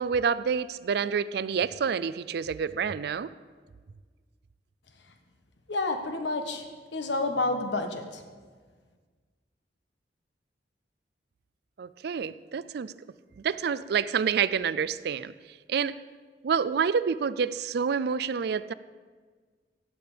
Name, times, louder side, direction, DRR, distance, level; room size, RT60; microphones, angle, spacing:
voice 1, 0.0-3.3 11.8-12.9 13.4-15.3 15.7-16.0 16.4-18.7, right 6 dB, 65° right, 17 dB, 0.4 m, -28 dB
voice 2, 5.7-6.6 6.9-8.2, left 2 dB, 90° left, 6 dB, 1.3 m, -29 dB
16.0 x 8.6 x 5.1 m, 1.5 s
head